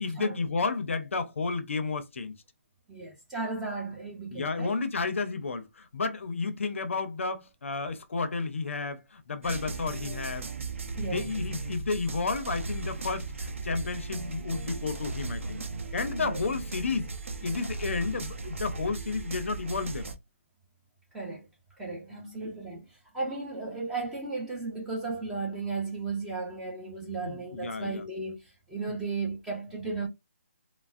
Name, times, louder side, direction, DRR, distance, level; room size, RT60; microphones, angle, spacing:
voice 1, 0.0-2.4 4.3-10.5 11.0-15.6 15.9-17.1 17.4-20.1 22.1-22.4 27.2-28.0 28.9-29.0, left 4 dB, 65° left, 0.5 m, -32 dB
voice 2, 2.9-4.7 11.0-11.4 16.2-16.4 21.1-21.5 21.8-30.1, right 3 dB, 5° right, 0.6 m, -35 dB
sound 1, 9.4-20.2, right 3 dB, 65° right, 0.7 m, -36 dB
3.4 x 2.0 x 2.4 m
figure-of-eight pair, 160°, 7 cm